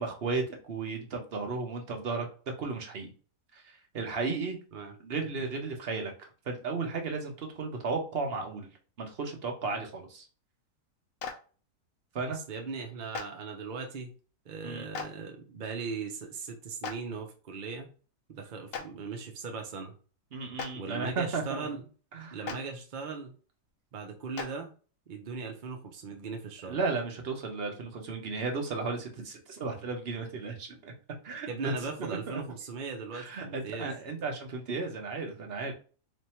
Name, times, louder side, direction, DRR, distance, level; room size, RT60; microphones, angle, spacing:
voice 1, 0.0-2.3 2.6-3.1 3.5-4.6 5.0-8.7 9.0-10.2 12.1-12.4 14.6-14.9 20.3-21.7 22.1-22.6 26.7-30.9 31.2-32.4 33.1-35.7, right 4 dB, 45° right, 3 dB, 0.9 m, -34 dB
Clapping, 11.2-11.3 13.1-13.2 14.9-15.1 16.8-16.9 18.7-18.8 20.5-20.7 22.4-22.5 24.3-24.5, left 6 dB, 90° left, 0.5 m, -35 dB
voice 2, 12.3-14.1 14.5-17.9 18.3-19.9 20.7-21.8 22.3-23.3 23.9-24.7 25.1-26.8 31.5-33.9, right 5 dB, 85° right, 3 dB, 0.4 m, -38 dB
3.2 x 2.6 x 4.3 m, 0.38 s
omnidirectional pair, 1.8 m